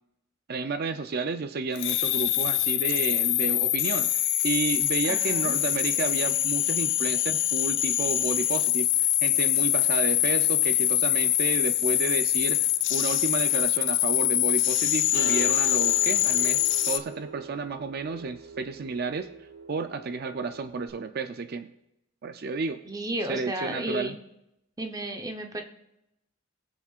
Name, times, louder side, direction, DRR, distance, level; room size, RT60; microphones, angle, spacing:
voice 1, 0.5-4.1 4.4-19.3 19.7-21.7 22.2-22.8 23.3-24.2, right 4 dB, 50° right, 9 dB, 0.5 m, -31 dB
sound 1, 1.8-17.0, left 13 dB, 60° left, 0.6 m, -24 dB
voice 2, 5.1-5.6 22.8-24.2 24.8-25.6, right 1 dB, 20° right, 4 dB, 0.8 m, -33 dB
sound 2, 15.1-20.9, right 4 dB, 90° right, 4.3 m, -42 dB
21.0 x 7.4 x 2.4 m, 0.85 s
head